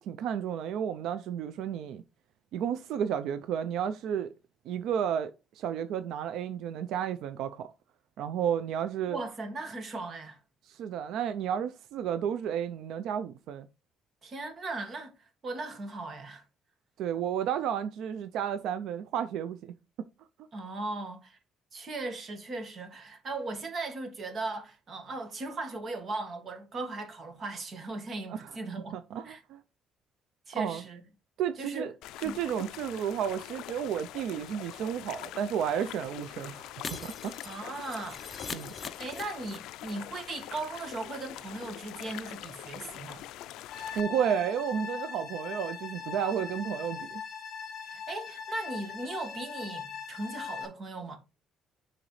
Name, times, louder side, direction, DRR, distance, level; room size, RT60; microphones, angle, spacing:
voice 1, 0.0-2.0 2.5-4.3 4.7-7.7 8.2-9.2 10.7-13.7 17.0-19.7 28.3-28.5 28.9-29.6 30.5-30.8 31.4-31.9 32.2-37.6 38.5-38.7 43.9-47.2, right 9 dB, 80° right, 0.4 m, -32 dB
voice 2, 9.1-10.4 14.2-16.4 20.5-21.4 21.7-29.0 29.2-29.4 30.5-31.0 31.6-31.9 32.2-32.4 37.4-38.3 39.0-43.2 47.8-51.2, right 2 dB, 40° right, 1.6 m, -38 dB
sound 1, 32.0-44.0, left 14 dB, 90° left, 0.3 m, -44 dB
Shatter, 36.8-39.9 40.2-40.3 40.6-40.7, left 4 dB, 25° left, 0.6 m, -42 dB
sound 2, 43.7-50.7, left 6 dB, 50° left, 1.6 m, -40 dB
10.0 x 3.8 x 3.2 m
cardioid pair, 135°, 0 cm